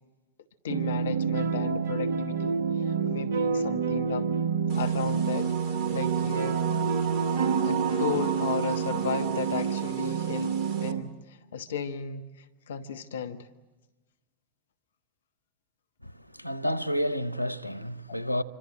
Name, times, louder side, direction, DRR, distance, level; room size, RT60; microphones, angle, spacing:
voice 1, 0.6-4.3 4.7-6.6 7.6-13.5, left 7 dB, 65° left, 1.3 m, -35 dB
sound 1, 0.7-11.0, right 6 dB, 60° right, 1.0 m, -28 dB
sound 2, 4.7-10.9, right 8 dB, 35° right, 2.6 m, -34 dB
voice 2, 16.0-18.4, equal, 90° right, 1.0 m, -30 dB
27.5 x 25.5 x 7.5 m
figure-of-eight pair, 90°, 0 cm